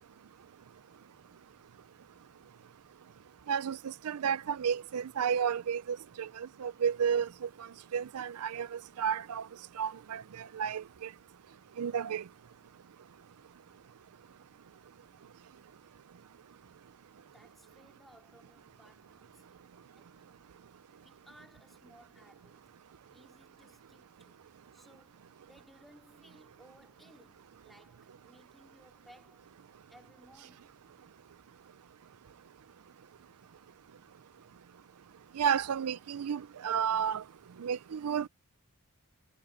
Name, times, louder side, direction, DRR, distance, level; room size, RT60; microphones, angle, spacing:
voice 1, 3.5-9.5 9.8-11.1 11.8-12.2 35.3-37.2 37.6-38.3, right 7 dB, 80° right, 0.5 m, -32 dB
voice 2, 17.2-19.7 20.0-20.4 20.9-22.7 23.1-24.5 24.7-29.6 29.9-30.9, equal, ahead, 3.5 m, -61 dB
head